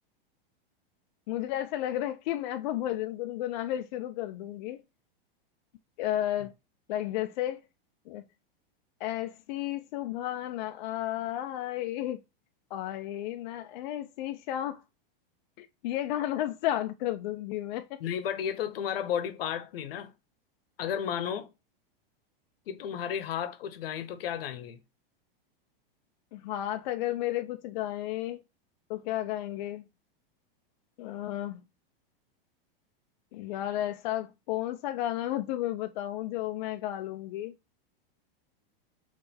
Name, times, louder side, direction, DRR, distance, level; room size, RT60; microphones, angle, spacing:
voice 1, 1.3-4.8 6.0-6.5 6.9-7.6 8.1-8.2 9.0-12.2 12.7-14.8 15.6-18.0 26.3-28.4 28.9-29.8 31.0-31.6 33.3-37.5, left 13 dB, 50° left, 0.4 m, -33 dB
voice 2, 18.0-20.1 20.8-21.5 22.7-24.8, left 9 dB, 75° left, 0.9 m, -33 dB
3.6 x 3.2 x 4.3 m
supercardioid pair, 155°, 29 cm